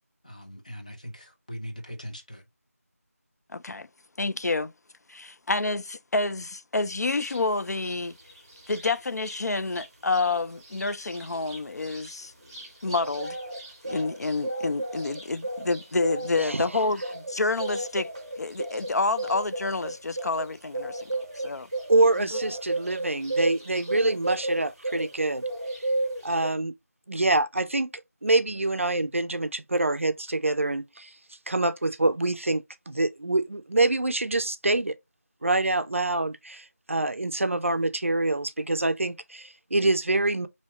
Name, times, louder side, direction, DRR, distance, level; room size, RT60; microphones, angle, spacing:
voice 1, 0.2-2.4, equal, 30° left, 0.6 m, -40 dB
voice 2, 3.5-3.9 4.2-4.7 5.1-8.1 8.7-12.3 12.8-13.4 13.8-18.1 18.4-21.7 22.2-22.4, left 3 dB, 85° left, 0.4 m, -28 dB
sound 1, 7.2-7.4 7.8-9.4 9.7-9.9 10.1-25.2 25.4-26.5, right 2 dB, 20° right, 1.0 m, -34 dB
voice 3, 16.4-16.7 21.9-25.4 26.2-26.7 27.1-31.1 31.5-35.0 35.4-40.5, right 2 dB, 55° right, 0.4 m, -26 dB
4.5 x 2.8 x 2.8 m
figure-of-eight pair, 180°, 9 cm